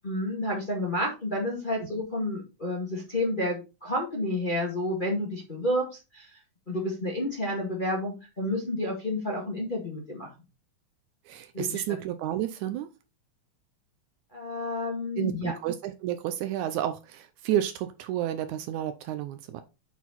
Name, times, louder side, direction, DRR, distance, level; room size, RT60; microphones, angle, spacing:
voice 1, 0.0-5.9 6.1-6.3 6.7-10.3 11.5-11.8 14.3-15.5, left 1 dB, 20° left, 1.4 m, -30 dB
voice 2, 11.3-12.9 15.2-19.6, right 11 dB, 80° right, 1.9 m, -31 dB
8.2 x 4.4 x 4.2 m
omnidirectional pair, 3.6 m